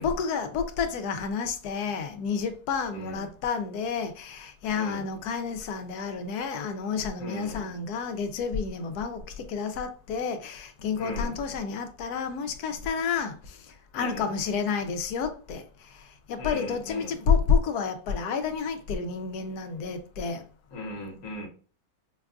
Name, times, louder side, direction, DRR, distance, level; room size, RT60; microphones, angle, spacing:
voice 1, 0.0-20.4, left 5 dB, 80° left, 1.1 m, -30 dB
voice 2, 2.9-3.3 4.7-5.1 7.2-7.7 11.0-11.4 13.9-14.3 16.4-17.1 20.7-21.5, left 1 dB, 60° left, 1.4 m, -38 dB
5.4 x 2.3 x 2.4 m
omnidirectional pair, 1.7 m